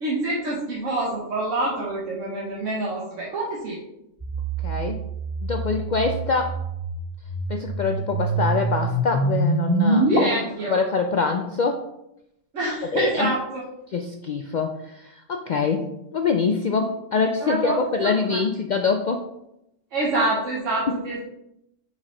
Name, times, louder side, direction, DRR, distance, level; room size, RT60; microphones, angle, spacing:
voice 1, 0.0-3.8 10.0-10.8 12.5-13.6 17.4-18.4 19.9-21.2, right 2 dB, 75° right, -4 dB, 1.4 m, -27 dB
sound 1, 4.2-10.2, right 2 dB, 10° right, 2.3 m, -25 dB
voice 2, 4.6-5.0 5.4-6.5 7.5-10.4 10.7-11.8 12.9-13.3 13.9-19.2, left 4 dB, 70° left, 4 dB, 0.4 m, -24 dB
5.5 x 4.8 x 3.7 m, 0.84 s
omnidirectional pair, 1.3 m